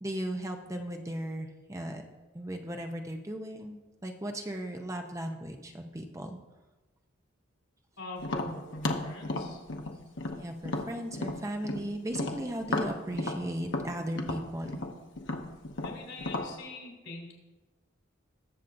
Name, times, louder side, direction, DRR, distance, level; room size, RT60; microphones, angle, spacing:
voice 1, 0.0-2.0 2.3-6.4 10.3-14.8, right 1 dB, 15° right, 4 dB, 0.6 m, -36 dB
voice 2, 8.0-9.6 15.8-17.3, left 2 dB, 90° left, -1 dB, 3.9 m, -43 dB
Tap, 8.2-11.8 12.1-16.5, left 2 dB, 65° left, 0.9 m, -34 dB
20.0 x 7.2 x 2.6 m, 1.2 s
head